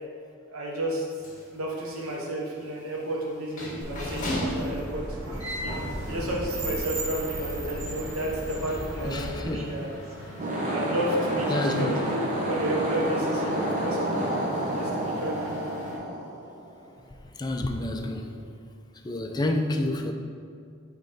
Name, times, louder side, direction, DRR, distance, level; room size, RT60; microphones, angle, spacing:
voice 1, 0.5-1.0 1.5-5.2 5.6-9.9 10.7-14.2 14.7-15.6, right 1 dB, 90° right, -2 dB, 0.9 m, -32 dB
sound 1, 1.1-16.0, left 1 dB, 40° left, 1.4 m, -40 dB
sound 2, 3.8-9.4, right 1 dB, 50° right, 1.2 m, -35 dB
voice 2, 9.0-9.7 11.5-11.9 17.4-18.4 19.0-20.1, left 1 dB, 20° left, 4 dB, 0.4 m, -28 dB
sound 3, 10.3-16.8, right 1 dB, 35° right, 1.0 m, -29 dB
6.6 x 3.2 x 4.9 m, 2.3 s
head